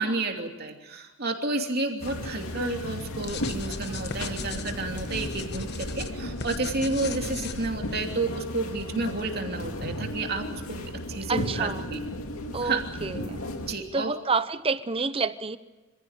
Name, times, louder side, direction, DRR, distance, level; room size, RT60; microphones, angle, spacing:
voice 1, 0.0-12.0 12.6-12.8 13.7-14.1, right 3 dB, 45° right, 3 dB, 3.0 m, -31 dB
sound 1, 2.0-13.7, left 1 dB, 70° left, 2.5 m, -35 dB
sound 2, 3.2-8.0, left 4 dB, 45° left, 1.2 m, -37 dB
voice 2, 11.3-11.9 12.5-13.5 13.9-15.6, right 4 dB, 25° right, 13 dB, 0.8 m, -29 dB
26.5 x 16.0 x 9.0 m, 1.2 s
head